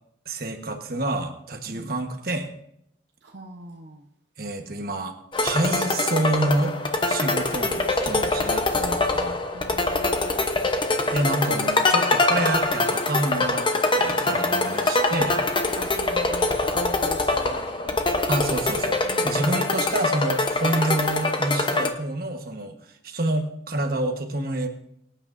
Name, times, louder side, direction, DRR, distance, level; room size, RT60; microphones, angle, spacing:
voice 1, 0.3-2.5 4.4-6.7 7.1-9.4 11.1-13.7 14.0-15.4 18.3-22.8 23.0-24.7, right 2 dB, 55° right, 5 dB, 1.3 m, -28 dB
voice 2, 3.2-4.0 9.5-10.5 15.7-18.0 19.1-19.5, right 1 dB, 70° right, 1 dB, 0.9 m, -40 dB
sound 1, 5.3-21.9, left 2 dB, 25° left, 0.9 m, -24 dB
24.0 x 8.9 x 2.6 m, 0.74 s
head